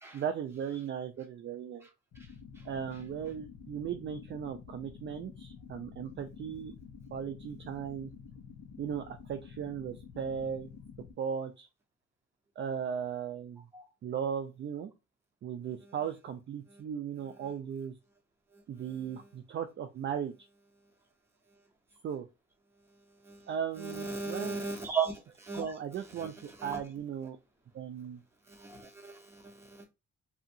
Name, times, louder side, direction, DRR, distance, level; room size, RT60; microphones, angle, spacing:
voice 1, 0.1-1.9 2.6-6.7 7.1-8.1 8.8-10.7 11.2-11.7 12.6-13.6 14.0-14.9 15.4-18.0 18.7-20.3 22.0-22.3 23.5-24.7 25.6-27.4 27.7-28.2, right 8 dB, 40° right, 7 dB, 0.4 m, -37 dB
sound 1, 2.1-11.1, left 6 dB, 65° left, 0.7 m, -50 dB
voice 2, 23.8-25.6 26.2-26.3 26.6-26.8 28.5-29.8, right 5 dB, 10° right, -1 dB, 1.2 m, -37 dB
2.8 x 2.4 x 2.6 m, 0.26 s
cardioid pair, 90°, 30 cm